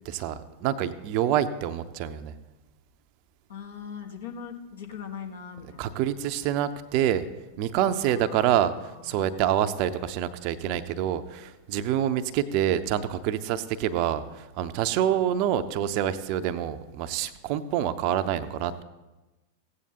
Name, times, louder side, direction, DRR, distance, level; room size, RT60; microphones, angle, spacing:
voice 1, 0.0-2.3 5.8-7.2 7.6-18.8, right 10 dB, 45° right, 11 dB, 0.6 m, -27 dB
voice 2, 3.5-6.0 8.0-9.5, left 7 dB, 65° left, 2 dB, 1.4 m, -41 dB
16.0 x 8.8 x 2.9 m, 1.1 s
figure-of-eight pair, 90°, 0 cm